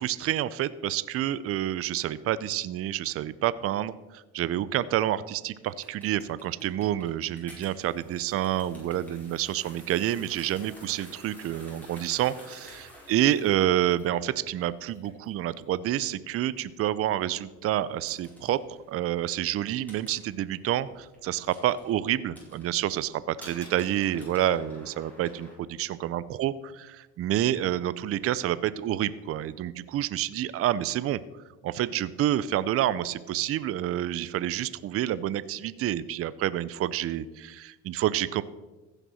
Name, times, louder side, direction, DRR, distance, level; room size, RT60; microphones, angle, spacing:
voice 1, 0.0-18.6 18.9-26.5 27.2-31.2 31.6-38.4, right 12 dB, 45° right, 17 dB, 0.5 m, -28 dB
sound 1, 5.6-25.6, left 1 dB, 5° left, 4.7 m, -52 dB
15.0 x 6.6 x 6.3 m, 1.1 s
cardioid pair, 115°, 34 cm